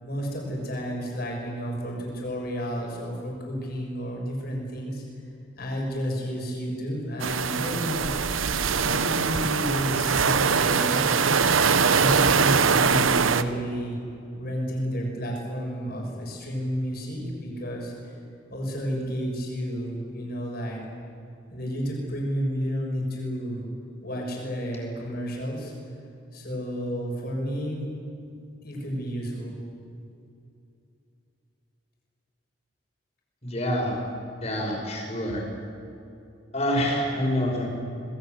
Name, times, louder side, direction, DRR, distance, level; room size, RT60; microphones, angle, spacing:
voice 1, 0.0-5.0 5.6-8.2 8.8-11.1 11.9-14.0 14.4-18.1 18.5-20.8 21.5-23.7 24.0-25.7 26.3-27.8 28.6-29.6, equal, 50° left, -1 dB, 6.9 m, -31 dB
sound 1, 7.2-13.4, right 5 dB, 90° right, 0.9 m, -22 dB
voice 2, 33.4-33.9 34.4-35.4 36.5-37.7, equal, 35° left, 0 dB, 6.1 m, -26 dB
26.5 x 21.5 x 8.1 m, 2.7 s
head